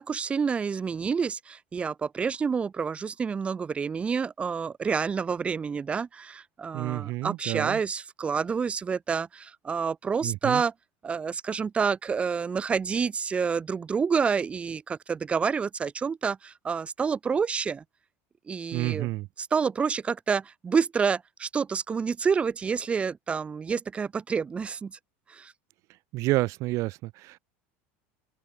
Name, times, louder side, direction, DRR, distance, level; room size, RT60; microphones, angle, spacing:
voice 1, 0.0-10.7 11.0-17.8 18.5-19.1 19.4-25.0 25.3-25.5, right 6 dB, 20° right, 0.4 m, -28 dB
voice 2, 6.7-7.8 10.2-10.6 18.7-19.3 26.1-27.4, right 20 dB, 50° right, 0.9 m, -29 dB
open air
supercardioid pair, 125°, 7 cm